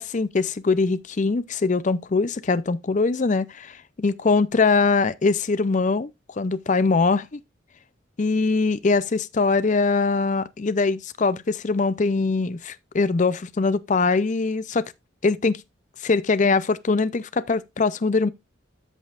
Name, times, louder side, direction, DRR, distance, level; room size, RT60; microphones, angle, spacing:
voice 1, 0.0-6.1 6.4-7.4 8.2-14.9 15.2-15.6 16.0-18.3, left 4 dB, 40° left, 0.5 m, -22 dB
13.5 x 5.4 x 2.4 m
head